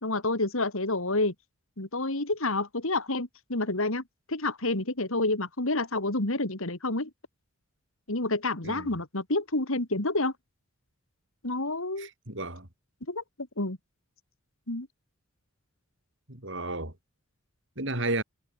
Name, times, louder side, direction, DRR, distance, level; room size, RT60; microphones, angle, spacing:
voice 1, 0.0-1.3 1.8-4.0 4.3-7.1 8.1-10.3 11.4-12.1 13.1-13.8 14.7-14.9, left 2 dB, 65° left, 2.8 m, -29 dB
voice 2, 12.0-12.7 16.3-16.9 17.8-18.2, right 2 dB, 55° right, 5.6 m, -32 dB
head